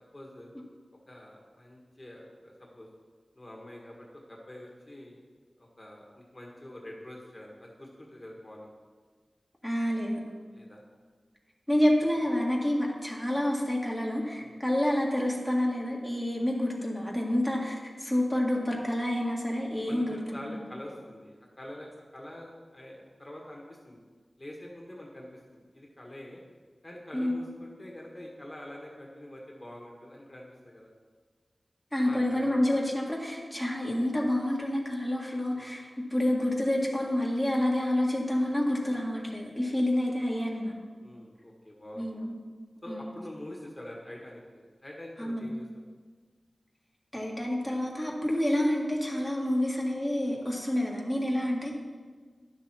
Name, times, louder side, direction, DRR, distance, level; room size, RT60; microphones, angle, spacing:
voice 1, 0.1-0.5 1.1-2.9 3.3-5.2 5.6-8.7 10.5-10.8 14.4-14.6 19.9-24.0 24.4-26.4 26.8-30.9 32.0-32.6 35.5-35.7 41.0-42.1 42.8-45.8, left 1 dB, 25° left, -2 dB, 1.6 m, -45 dB
voice 2, 9.6-10.2 11.7-20.7 27.1-27.4 31.9-40.7 42.0-42.4 42.9-43.1 45.2-45.5 47.1-51.8, left 1 dB, ahead, -3 dB, 1.8 m, -28 dB
11.5 x 6.2 x 4.4 m, 1.5 s
wide cardioid pair, 55°, 0 cm